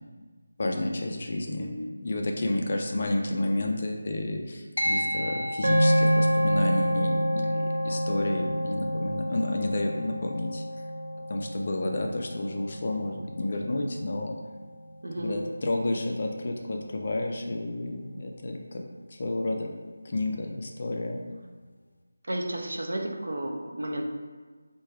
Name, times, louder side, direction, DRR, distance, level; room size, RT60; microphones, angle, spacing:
voice 1, 0.6-10.6 11.3-14.4 15.2-18.8 19.1-19.7 20.0-21.2, left 2 dB, 30° left, 2 dB, 0.3 m, -30 dB
sound 1, 4.8-14.5, equal, 85° left, 0.6 m, -36 dB
sound 2, 5.6-14.0, equal, 85° right, 1.1 m, -28 dB
voice 2, 15.0-15.4 22.3-24.0, right 1 dB, 65° right, 1 dB, 0.7 m, -32 dB
4.4 x 2.2 x 4.6 m, 1.4 s
figure-of-eight pair, 180°, 0 cm